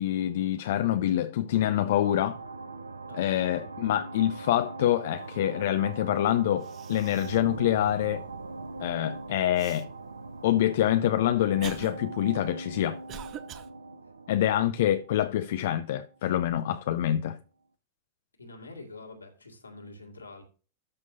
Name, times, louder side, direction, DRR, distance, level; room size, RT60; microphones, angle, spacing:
voice 1, 0.0-2.4 3.1-8.2 8.8-9.9 10.4-13.0 14.3-17.4, left 12 dB, 55° left, 0.5 m, -26 dB
sound 1, 2.0-16.2, right 3 dB, 75° right, 0.5 m, -41 dB
voice 2, 3.1-3.7 18.4-20.4, left 2 dB, 80° left, 2.2 m, -46 dB
Cough, 6.2-6.3 6.6-7.5 8.0-8.1 9.6-9.8 10.6-13.7, right 9 dB, 35° right, 0.8 m, -44 dB
13.0 x 6.0 x 2.7 m
figure-of-eight pair, 90°, 0 cm